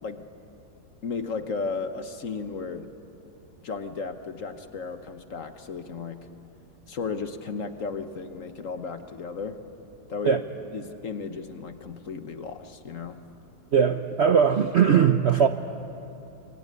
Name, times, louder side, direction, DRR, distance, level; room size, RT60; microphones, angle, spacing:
voice 1, 1.0-2.9 3.6-6.3 6.9-9.6 10.1-10.4 10.7-13.2, left 4 dB, 50° left, 8 dB, 1.3 m, -34 dB
voice 2, 13.7-15.5, right 7 dB, 55° right, 8 dB, 0.7 m, -20 dB
25.0 x 23.0 x 9.6 m, 2.9 s
omnidirectional pair, 2.0 m